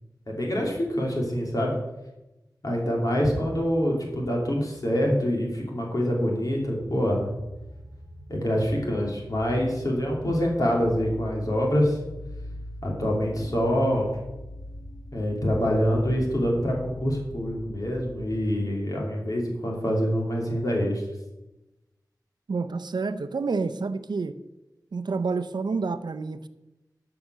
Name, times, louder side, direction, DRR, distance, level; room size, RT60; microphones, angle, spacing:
voice 1, 0.3-1.7 2.6-7.3 8.3-12.0 12.8-14.1 15.1-21.0, equal, 55° left, -2 dB, 3.1 m, -25 dB
sound 1, 6.5-18.6, left 1 dB, 75° left, 4.5 m, -42 dB
voice 2, 22.5-24.3 24.9-26.5, right 4 dB, 80° right, 12 dB, 0.7 m, -29 dB
13.0 x 5.9 x 6.3 m, 1.0 s
wide cardioid pair, 55°, 7 cm